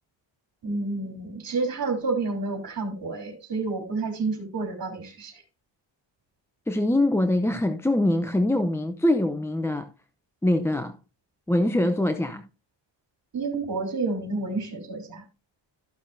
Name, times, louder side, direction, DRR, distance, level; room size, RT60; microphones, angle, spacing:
voice 1, 0.6-5.4 13.3-15.2, right 3 dB, 45° right, 3.4 m, -29 dB
voice 2, 6.7-9.9 10.4-11.0 11.5-12.5, left 1 dB, 5° left, 0.6 m, -23 dB
14.0 x 6.3 x 2.6 m
cardioid pair, 95°, 49 cm